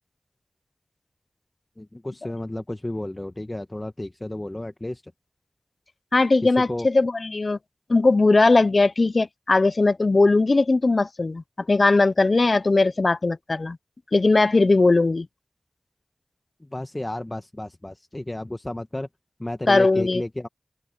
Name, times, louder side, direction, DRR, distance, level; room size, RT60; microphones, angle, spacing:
voice 1, 1.8-5.0 6.4-6.9 16.6-19.1 19.4-20.5, left 1 dB, 25° left, 1.3 m, -32 dB
voice 2, 6.1-7.6 7.9-13.8 14.1-15.3 19.7-20.2, left 3 dB, 60° left, 0.5 m, -19 dB
wide cardioid pair, 55°, 0 cm